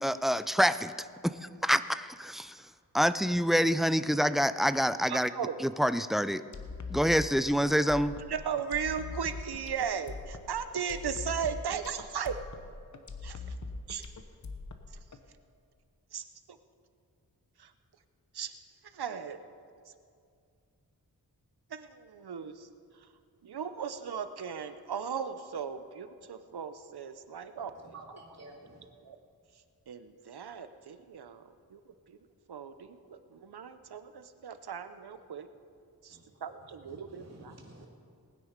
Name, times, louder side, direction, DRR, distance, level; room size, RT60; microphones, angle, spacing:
voice 1, 0.0-0.9 1.2-2.6 2.9-5.3 5.6-6.4 6.9-8.2, equal, ahead, 13 dB, 0.3 m, -27 dB
voice 2, 5.1-5.6 8.3-12.4 13.2-13.4 13.9-14.1 16.1-16.6 17.6-17.7 18.3-18.5 18.9-19.4 21.7-22.7 23.4-27.9 29.0-29.2 29.9-31.8 32.1-32.2 32.5-35.5 36.0-37.5, right 7 dB, 90° right, 10 dB, 0.8 m, -37 dB
sound 1, 6.5-15.2, left 3 dB, 50° left, 1.1 m, -42 dB
voice 3, 27.6-28.9 36.1-37.9, right 2 dB, 45° right, -1 dB, 2.6 m, -52 dB
19.5 x 9.6 x 5.2 m, 2.3 s
wide cardioid pair, 105°, 38 cm